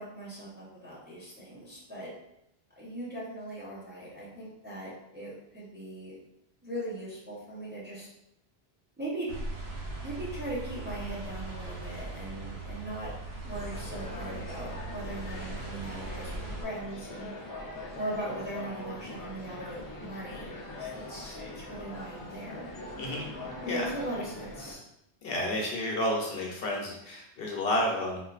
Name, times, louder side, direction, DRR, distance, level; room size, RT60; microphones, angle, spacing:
voice 1, 0.0-2.1 2.8-6.2 6.6-8.1 9.0-9.3 10.0-13.1 13.4-16.3 16.6-17.3 17.9-22.7 23.6-24.8, right 1 dB, 10° right, -7 dB, 0.7 m, -39 dB
sound 1, 9.3-16.7, right 2 dB, 80° right, 0.9 m, -39 dB
sound 2, 13.5-24.8, left 2 dB, 35° left, 0.3 m, -42 dB
voice 2, 23.7-24.3 25.2-28.2, left 1 dB, 65° left, -1 dB, 0.8 m, -31 dB
3.6 x 2.5 x 2.4 m, 0.81 s
omnidirectional pair, 1.1 m